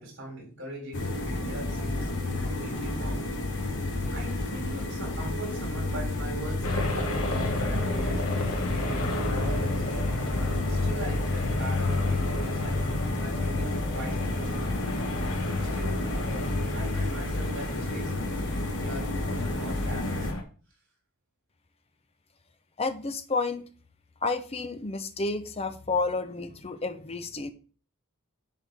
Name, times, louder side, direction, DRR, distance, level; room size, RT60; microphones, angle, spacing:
voice 1, 0.0-3.3 4.1-8.2 8.5-9.8 10.4-12.8 13.1-14.9 15.6-18.5 18.8-20.3, right 1 dB, 60° right, -1 dB, 4.0 m, -41 dB
sound 1, 0.9-20.3, left 1 dB, 55° left, 1.4 m, -31 dB
sound 2, 6.6-20.4, left 2 dB, 70° left, 1.3 m, -31 dB
voice 2, 22.8-23.7 24.2-27.5, left 3 dB, 25° left, 9 dB, 0.6 m, -30 dB
10.0 x 4.2 x 3.5 m, 0.39 s
head